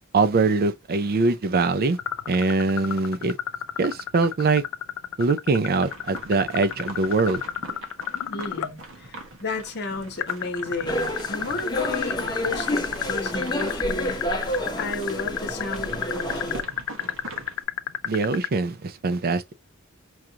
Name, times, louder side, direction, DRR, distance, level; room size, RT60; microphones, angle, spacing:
voice 1, 0.1-2.0 2.3-3.4 3.8-4.6 5.2-7.4 18.1-19.4, right 3 dB, 45° right, 0.5 m, -22 dB
sound 1, 2.0-8.7 10.2-18.5, left 10 dB, 75° left, 0.4 m, -29 dB
sound 2, 5.8-17.6, right 2 dB, 65° right, 1.0 m, -43 dB
voice 2, 8.3-14.2 14.8-16.6, left 3 dB, 50° left, 1.0 m, -33 dB
sound 3, 10.9-16.6, left 1 dB, 20° left, 0.9 m, -29 dB
4.7 x 2.5 x 2.8 m
head